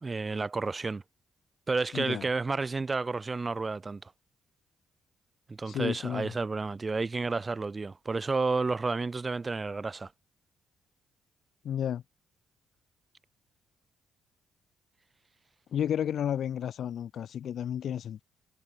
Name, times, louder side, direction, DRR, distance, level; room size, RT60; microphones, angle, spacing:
voice 1, 0.0-1.0 1.7-4.0 5.5-10.1, right 3 dB, 25° right, 0.9 m, -31 dB
voice 2, 1.9-2.3 5.7-6.3 11.6-12.0 15.7-18.2, left 9 dB, 65° left, 1.1 m, -32 dB
cardioid pair, 95°, 0 cm